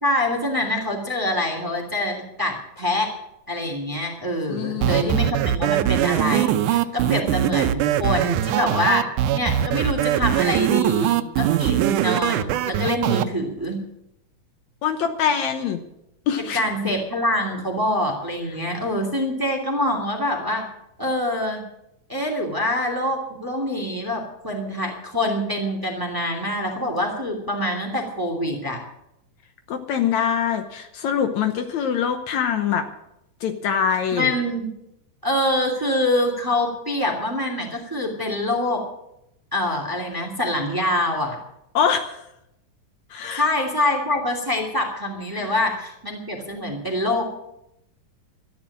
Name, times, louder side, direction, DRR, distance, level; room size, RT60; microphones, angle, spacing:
voice 1, 0.0-3.1 3.5-9.1 9.3-13.8 16.4-20.6 21.0-21.6 22.1-28.8 34.1-34.7 35.2-38.8 39.5-41.4 43.4-47.3, left 1 dB, 5° right, 2 dB, 2.2 m, -25 dB
voice 2, 4.5-5.2 14.8-15.8 16.3-16.9 29.7-32.9 33.4-34.3 41.7-42.2 43.1-43.5 45.3-45.6, left 8 dB, 70° left, 7 dB, 2.2 m, -24 dB
sound 1, 4.8-13.2, right 11 dB, 85° right, 2.2 m, -21 dB
13.0 x 10.5 x 8.5 m, 0.82 s
omnidirectional pair, 3.5 m